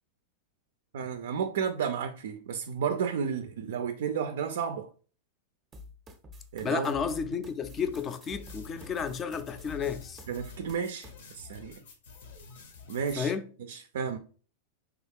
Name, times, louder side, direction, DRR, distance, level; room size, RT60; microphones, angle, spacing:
voice 1, 0.9-4.9 6.5-6.9 10.3-11.8 12.9-13.3 13.7-14.2, right 7 dB, 75° right, 0.3 m, -32 dB
sound 1, 5.7-11.1, left 2 dB, 20° right, 0.5 m, -48 dB
voice 2, 6.6-10.2 13.2-13.5, left 6 dB, 25° left, 0.4 m, -32 dB
sound 2, 7.8-13.2, left 4 dB, 75° left, 0.8 m, -50 dB
3.4 x 2.3 x 3.4 m
hypercardioid pair, 115°, 0 cm